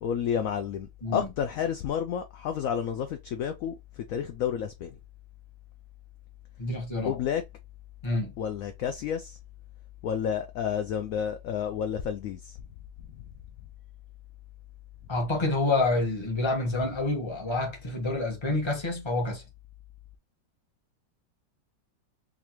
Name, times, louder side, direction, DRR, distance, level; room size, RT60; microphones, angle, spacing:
voice 1, 0.0-5.0 7.1-7.4 8.4-9.4 10.0-12.6, left 8 dB, 75° left, 0.8 m, -30 dB
voice 2, 6.6-7.1 8.0-8.3 15.1-19.4, left 2 dB, 20° left, 0.9 m, -28 dB
4.0 x 2.7 x 3.0 m
omnidirectional pair, 1.9 m